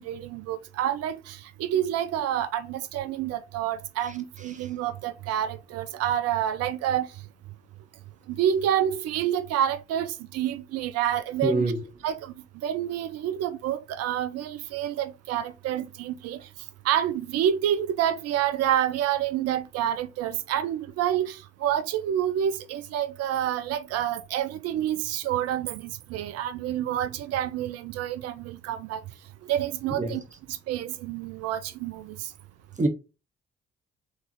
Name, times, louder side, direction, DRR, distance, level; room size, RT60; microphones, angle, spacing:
voice 1, 0.0-7.1 8.3-11.7 12.0-12.3 12.6-16.4 16.8-29.0 29.5-30.2 30.5-32.3, right 10 dB, 55° right, 0.5 m, -28 dB
voice 2, 11.4-11.8 29.9-30.2 32.8-32.9, right 2 dB, 25° right, 1.2 m, -24 dB
3.7 x 3.5 x 3.1 m
hypercardioid pair, 45°, 29 cm